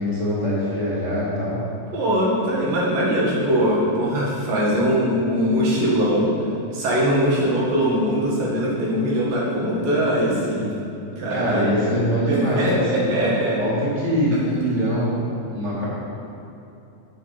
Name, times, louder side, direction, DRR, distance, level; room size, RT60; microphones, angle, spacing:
voice 1, 0.0-1.6 11.3-13.1 13.6-15.9, equal, 15° left, -9 dB, 1.7 m, -23 dB
voice 2, 1.9-6.3 6.7-10.7 11.2-11.9 12.3-13.6 14.3-14.4, equal, 90° right, -5 dB, 3.7 m, -21 dB
8.2 x 7.0 x 5.9 m, 2.8 s
omnidirectional pair, 3.8 m